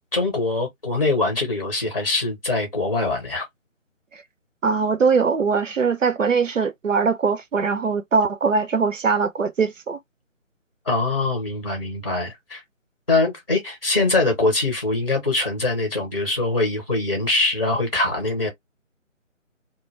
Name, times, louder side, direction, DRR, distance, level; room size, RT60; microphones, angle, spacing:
voice 1, 0.1-3.5 10.8-12.6 13.1-18.5, left 2 dB, 25° left, 0.7 m, -23 dB
voice 2, 4.6-10.0, right 5 dB, 70° right, 0.6 m, -21 dB
2.2 x 2.0 x 3.0 m
figure-of-eight pair, 155°, 39 cm